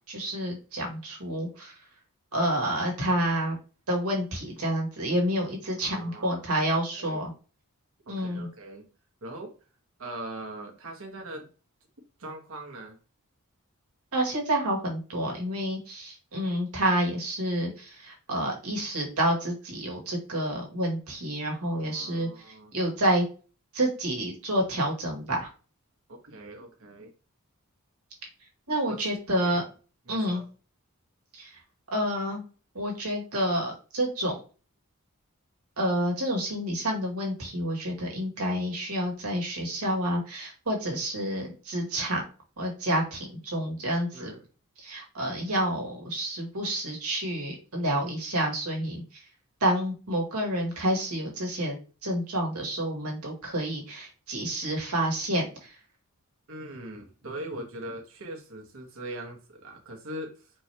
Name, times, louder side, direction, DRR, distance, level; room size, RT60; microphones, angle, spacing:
voice 1, 0.1-1.8 2.3-3.6 3.9-7.3 8.1-8.5 14.1-23.2 23.7-25.5 28.7-29.6 30.1-30.4 31.3-31.6 31.9-32.4 32.7-34.4 35.8-42.2 42.6-44.3 44.8-49.2 49.6-55.8, right 1 dB, 80° right, -1 dB, 1.8 m, -29 dB
voice 2, 5.8-6.4 6.9-7.2 8.1-8.8 9.2-9.5 10.0-11.5 12.2-13.0 21.7-22.7 26.1-27.1 28.9-29.6 30.1-30.4 44.1-44.4 56.5-60.5, right 1 dB, 65° right, 2 dB, 1.3 m, -41 dB
4.4 x 2.9 x 3.4 m, 0.36 s
head